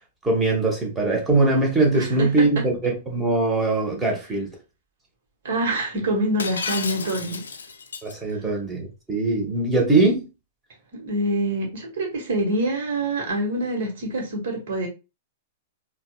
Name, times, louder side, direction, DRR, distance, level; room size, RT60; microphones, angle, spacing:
voice 1, 0.2-4.5 8.0-10.3, right 2 dB, 15° right, 1.4 m, -21 dB
voice 2, 1.9-2.3 5.4-7.4 8.3-8.4 10.9-14.9, right 1 dB, 60° right, 1.4 m, -26 dB
Shatter, 6.4-8.1, left 5 dB, 70° left, 0.4 m, -32 dB
4.2 x 2.4 x 2.3 m
figure-of-eight pair, 105°, 0 cm